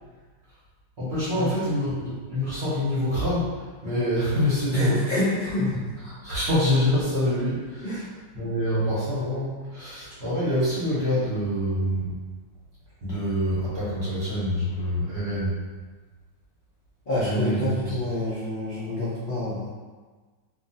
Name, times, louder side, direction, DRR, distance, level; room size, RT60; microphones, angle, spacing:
voice 1, 1.0-3.5 3.8-5.0 6.2-7.8 8.3-12.1 13.0-15.6 17.2-17.7, left 1 dB, 45° right, -10 dB, 0.9 m, -26 dB
voice 2, 4.7-5.7 7.8-8.1 17.1-19.7, left 1 dB, 70° left, -11 dB, 0.4 m, -27 dB
3.0 x 2.4 x 2.7 m, 1.4 s
omnidirectional pair, 2.0 m